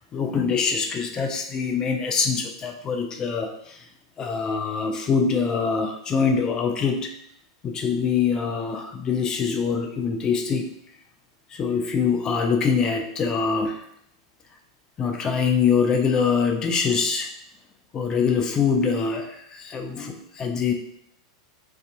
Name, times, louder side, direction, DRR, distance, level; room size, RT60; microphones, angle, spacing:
voice 1, 0.1-3.9 4.2-7.1 7.6-10.7 11.5-13.8 15.0-17.3 17.9-20.7, left 5 dB, 25° left, 4 dB, 0.3 m, -24 dB
2.6 x 2.3 x 2.6 m, 0.72 s
hypercardioid pair, 95°, 3 cm